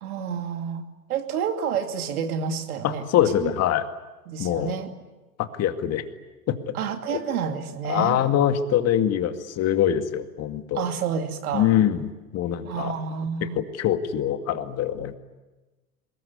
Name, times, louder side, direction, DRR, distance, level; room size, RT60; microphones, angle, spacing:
voice 1, 0.0-3.0 3.4-3.5 4.3-4.9 6.7-8.2 10.7-11.7 12.6-13.6, right 7 dB, 65° right, 6 dB, 2.7 m, -29 dB
voice 2, 2.8-3.8 4.4-4.8 5.4-6.0 6.5-6.7 7.1-7.2 7.8-10.8 11.5-12.9 13.6-15.2, left 10 dB, 30° left, 8 dB, 2.2 m, -24 dB
24.0 x 21.5 x 9.9 m, 1.1 s
figure-of-eight pair, 95°, 47 cm